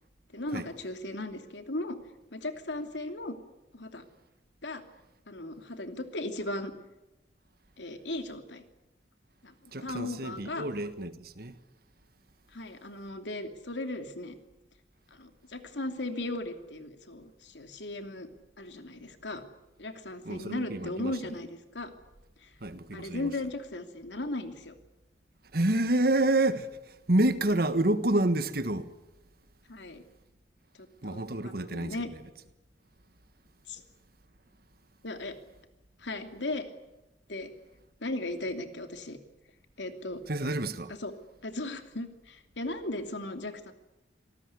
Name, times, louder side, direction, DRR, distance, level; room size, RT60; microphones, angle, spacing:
voice 1, 0.3-2.0 2.3-3.3 3.7-4.0 4.6-4.8 5.3-6.7 7.8-8.6 9.4-9.5 9.8-10.7 12.5-14.4 15.1-18.3 18.6-19.5 19.8-21.9 22.4-22.5 22.9-24.7 29.7-30.0 30.8-32.1 33.7-33.8 35.0-35.3 36.0-36.7 37.3-37.5 38.0-39.2 39.8-40.2 40.9-41.1 41.4-43.7, left 2 dB, 85° left, 2.9 m, -37 dB
voice 2, 9.7-11.5 20.2-21.1 22.6-23.3 25.5-26.7 27.1-28.9 31.0-32.0 40.3-40.9, right 1 dB, 60° right, 1.5 m, -28 dB
26.0 x 19.0 x 9.7 m
head